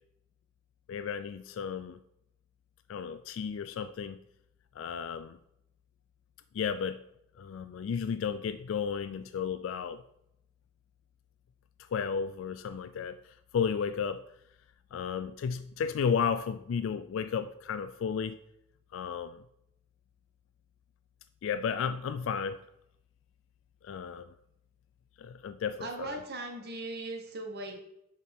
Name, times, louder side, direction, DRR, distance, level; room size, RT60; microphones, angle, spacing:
voice 1, 0.9-2.0 2.9-4.2 4.8-5.4 6.5-7.0 7.4-10.0 11.9-13.2 13.5-14.2 14.9-18.4 18.9-19.4 21.4-22.6 23.8-24.3 25.2-26.2, left 6 dB, 80° left, 0.3 m, -33 dB
voice 2, 25.8-27.8, right 2 dB, 55° right, 1.3 m, -38 dB
6.4 x 3.6 x 5.7 m
head